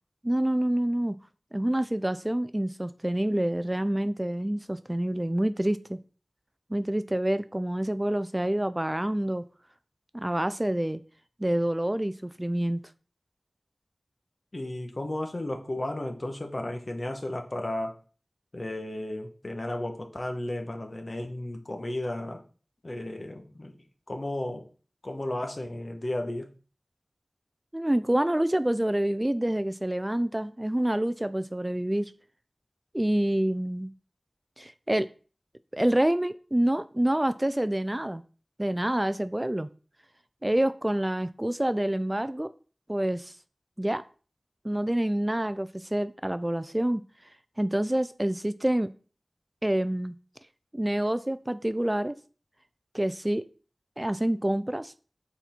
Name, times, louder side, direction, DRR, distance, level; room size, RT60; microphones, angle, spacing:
voice 1, 0.2-1.2 1.5-6.0 6.7-9.4 10.1-11.0 11.4-12.8 27.7-32.1 32.9-33.9 34.6-35.1 35.7-38.2 38.6-39.7 40.4-42.5 42.9-43.3 43.8-44.0 44.6-47.0 47.6-48.9 49.6-50.1 50.7-52.1 52.9-53.4 54.0-54.9, right 1 dB, 20° right, 13 dB, 0.3 m, -27 dB
voice 2, 14.5-18.0 18.5-22.4 22.8-23.8 24.1-24.6 25.0-26.5, left 1 dB, 50° left, 4 dB, 1.2 m, -34 dB
5.7 x 4.2 x 4.3 m, 0.38 s
wide cardioid pair, 60°, 0 cm